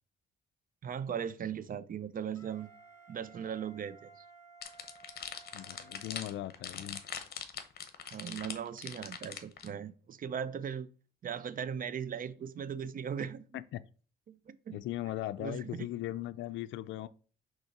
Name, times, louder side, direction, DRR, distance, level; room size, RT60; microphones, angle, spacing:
voice 1, 0.8-2.7 3.1-4.2 8.1-10.9 11.2-13.5 14.3-14.8 15.4-15.9, right 8 dB, 45° right, 0.6 m, -38 dB
Wind instrument woodwind instrument, 2.3-7.1, right 4 dB, 15° left, 2.1 m, -57 dB
sound 1, 4.6-9.7, left 8 dB, 50° left, 1.0 m, -42 dB
voice 2, 5.5-7.0 13.5-13.6 14.7-17.1, left 14 dB, 75° left, 0.4 m, -38 dB
5.3 x 3.7 x 5.9 m
cardioid pair, 90°, 20 cm